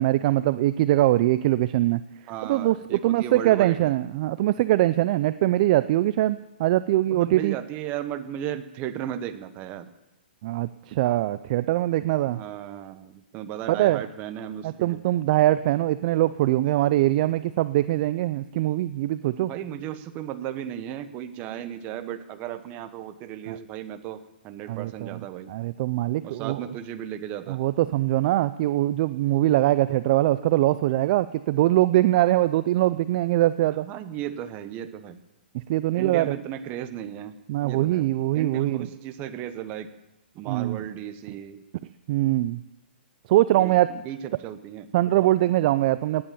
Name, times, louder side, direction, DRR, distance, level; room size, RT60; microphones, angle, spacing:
voice 1, 0.0-2.0 2.5-7.6 10.4-12.4 13.7-14.0 14.6-19.5 23.5-23.6 24.7-25.2 25.5-26.6 27.5-33.9 35.5-36.3 37.5-38.9 40.4-40.8 42.1-42.6 43.3-43.9 44.9-46.2, right 15 dB, 45° right, 14 dB, 0.5 m, -22 dB
voice 2, 2.3-3.9 7.1-9.9 12.3-15.0 19.4-25.5 26.2-27.6 33.8-35.2 36.0-37.4 37.6-38.1 38.3-39.9 40.3-41.6 43.5-44.9 45.2-45.3, right 10 dB, 30° right, 10 dB, 1.2 m, -35 dB
18.0 x 10.5 x 7.2 m, 0.94 s
hypercardioid pair, 140°, 6 cm